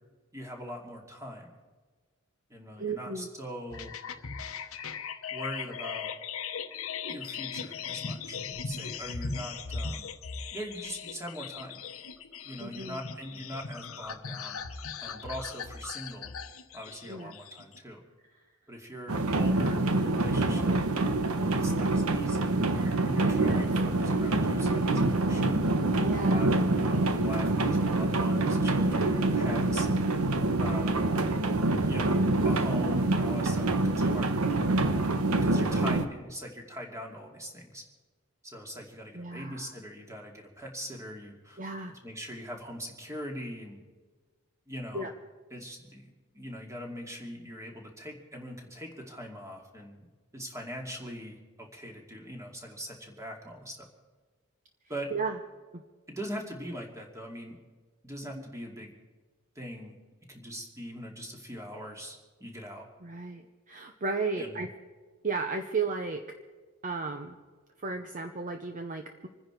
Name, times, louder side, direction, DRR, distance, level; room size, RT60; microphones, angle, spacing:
voice 1, 0.3-1.6 2.5-3.9 5.3-6.1 7.1-10.1 10.5-11.8 12.4-14.6 15.0-16.3 16.7-18.0 18.7-20.8 21.5-25.6 26.1-29.9 30.6-31.0 31.9-34.4 34.9-37.8 38.4-41.6 42.0-43.8 44.7-45.1 45.5-50.1 50.3-53.9 54.9-55.1 56.1-57.6 58.0-58.9 59.6-59.9 60.3-62.9 64.4-64.6, equal, 15° right, 1 dB, 2.5 m, -41 dB
voice 2, 2.8-3.3 12.6-13.0 17.1-17.4 20.5-20.9 23.2-23.4 26.0-26.5 29.0-29.3 39.1-39.7 41.6-41.9 44.9-45.1 55.1-55.4 55.7-55.8 63.0-64.7 65.2-66.2 66.8-67.4 67.8-69.3, right 4 dB, 35° right, 5 dB, 0.8 m, -34 dB
sound 1, 3.7-17.8, left 5 dB, 70° left, 1.0 m, -39 dB
sound 2, 19.1-36.1, right 2 dB, 80° right, 1.1 m, -26 dB
26.5 x 10.0 x 4.6 m, 1.4 s
head